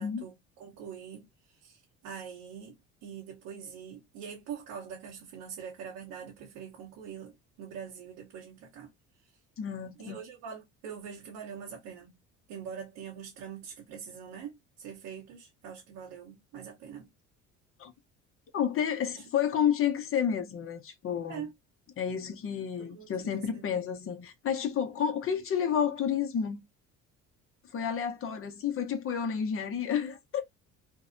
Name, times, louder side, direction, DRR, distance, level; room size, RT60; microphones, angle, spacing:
voice 1, 0.0-8.9 10.0-12.1 12.5-17.1 21.3-21.5 22.8-23.6, right 7 dB, 75° right, 0.9 m, -44 dB
voice 2, 9.6-10.2 17.8-17.9 18.5-21.4 22.0-26.6 27.7-30.4, left 8 dB, 45° left, 0.7 m, -30 dB
2.6 x 2.1 x 2.5 m
supercardioid pair, 85°, 32 cm